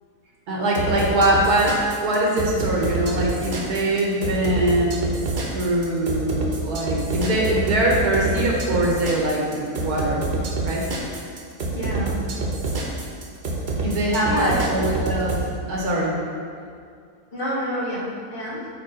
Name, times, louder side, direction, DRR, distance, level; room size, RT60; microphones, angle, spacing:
voice 1, 0.5-5.0 5.5-10.3 10.6-10.8 13.8-16.2, right 1 dB, 85° right, -2 dB, 1.6 m, -22 dB
sound 1, 0.7-15.4, right 3 dB, 50° right, 1.1 m, -27 dB
voice 2, 11.7-12.2 14.2-14.9 17.3-18.7, equal, 40° left, -6 dB, 1.3 m, -28 dB
8.6 x 3.2 x 4.1 m, 2.2 s
omnidirectional pair, 1.6 m